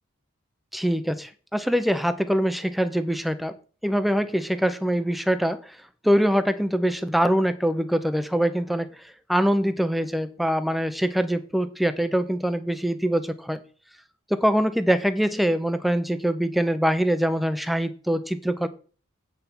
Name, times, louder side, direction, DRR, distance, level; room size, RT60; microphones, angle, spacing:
voice 1, 0.7-3.5 3.8-5.8 6.0-13.6 14.3-18.7, equal, ahead, 11 dB, 0.6 m, -24 dB
8.5 x 5.6 x 6.0 m, 0.39 s
head